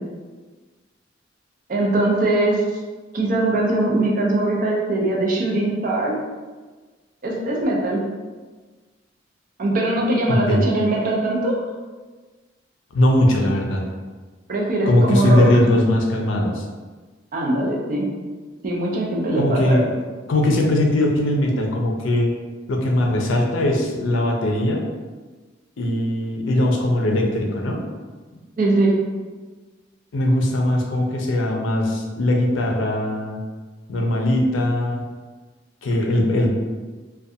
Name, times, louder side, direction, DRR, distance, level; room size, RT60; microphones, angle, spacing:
voice 1, 1.7-2.6 3.1-6.1 7.2-8.0 9.6-11.6 14.5-15.4 17.3-18.1 18.6-19.8 28.6-28.9, right 2 dB, 45° right, -2 dB, 0.5 m, -21 dB
voice 2, 10.3-10.6 12.9-13.8 14.9-16.6 19.3-19.8 20.3-22.3 22.7-24.8 25.8-27.8 30.1-33.4 33.9-35.0 35.8-36.5, left 1 dB, 80° left, 1 dB, 0.5 m, -20 dB
2.4 x 2.2 x 2.6 m, 1.3 s
head